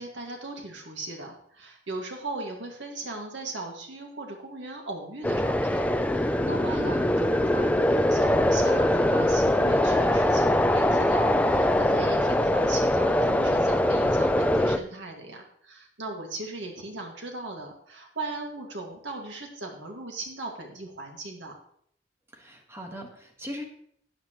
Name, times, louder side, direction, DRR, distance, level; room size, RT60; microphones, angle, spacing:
voice 1, 0.0-21.5, right 2 dB, 80° right, 1 dB, 2.1 m, -38 dB
sound 1, 5.2-14.8, left 1 dB, 10° left, 0.4 m, -22 dB
voice 2, 22.3-23.6, equal, 15° right, 2 dB, 1.4 m, -39 dB
12.5 x 9.0 x 3.1 m, 0.67 s
head